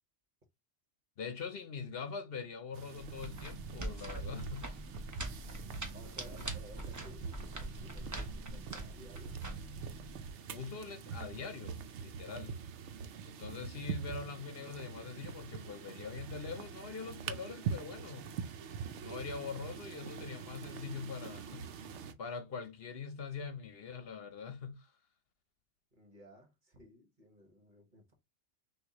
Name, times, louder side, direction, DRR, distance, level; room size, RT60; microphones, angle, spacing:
voice 1, 1.2-4.9 10.5-12.6 13.2-18.3 19.0-21.9 22.2-24.9, left 5 dB, 60° left, 0.9 m, -43 dB
sound 1, 2.7-22.1, right 6 dB, 90° right, 1.0 m, -44 dB
sound 2, 3.0-10.3, right 1 dB, 20° right, 0.7 m, -44 dB
voice 2, 5.9-9.4 12.2-12.4 25.9-28.1, equal, 45° right, 1.5 m, -56 dB
6.2 x 2.6 x 2.9 m
omnidirectional pair, 1.2 m